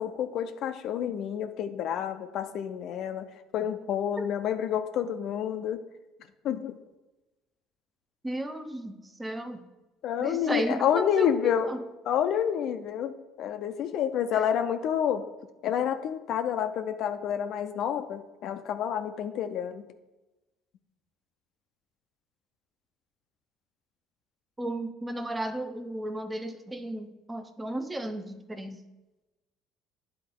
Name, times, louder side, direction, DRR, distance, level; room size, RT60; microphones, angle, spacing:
voice 1, 0.0-3.3 3.5-5.8 6.4-6.8 10.0-11.7 12.1-15.2 15.6-19.8, left 9 dB, 60° left, 8 dB, 0.4 m, -29 dB
voice 2, 8.2-9.7 10.2-11.8 24.6-28.8, right 1 dB, 15° right, 7 dB, 0.6 m, -34 dB
9.9 x 3.8 x 3.7 m, 1.1 s
hypercardioid pair, 65°, 0 cm